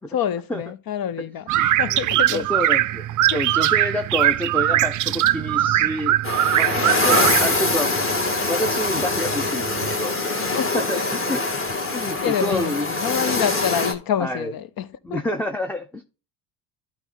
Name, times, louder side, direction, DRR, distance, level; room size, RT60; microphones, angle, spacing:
voice 1, 0.0-1.5 1.8-2.5 6.7-6.8 10.5-10.8 12.2-15.2, left 9 dB, 50° left, 0.7 m, -27 dB
sound 1, 1.5-9.9, right 14 dB, 40° right, 0.5 m, -21 dB
voice 2, 1.6-6.2 6.5-7.9 8.5-10.4 10.7-11.4 11.9-13.0 14.2-14.5 15.0-16.0, left 1 dB, 5° left, 0.6 m, -28 dB
sound 2, 6.2-13.9, left 3 dB, 25° left, 1.8 m, -23 dB
11.5 x 4.3 x 3.9 m
hypercardioid pair, 65°, 47 cm